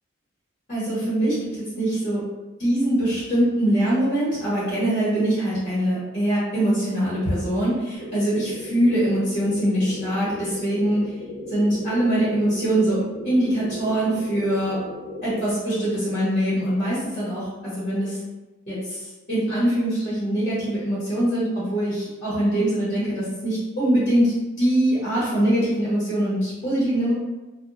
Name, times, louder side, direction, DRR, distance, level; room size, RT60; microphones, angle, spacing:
voice 1, 0.7-1.4 1.8-2.2 2.6-11.0 11.5-13.0 13.2-14.8 15.2-18.2 18.7-19.0 19.3-24.3 24.6-27.1, right 1 dB, 40° left, -10 dB, 0.9 m, -23 dB
sound 1, 7.9-15.5, left 1 dB, 75° left, 0.6 m, -37 dB
2.1 x 2.1 x 2.7 m, 1.1 s
head